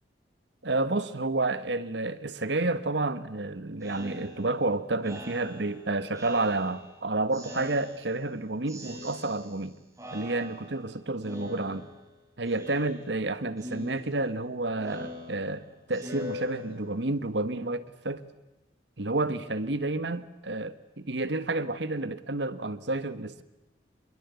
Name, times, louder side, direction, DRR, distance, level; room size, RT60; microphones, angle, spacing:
voice 1, 0.6-9.8 10.1-11.9 12.4-18.2 19.0-23.4, right 2 dB, 80° right, 13 dB, 1.4 m, -30 dB
Speech synthesizer, 3.8-7.0 7.3-8.3 8.7-9.7 10.0-10.9 11.2-12.1 12.5-13.3 13.6-17.1, left 2 dB, 20° right, 5.7 m, -43 dB
26.0 x 21.5 x 8.3 m, 0.95 s
head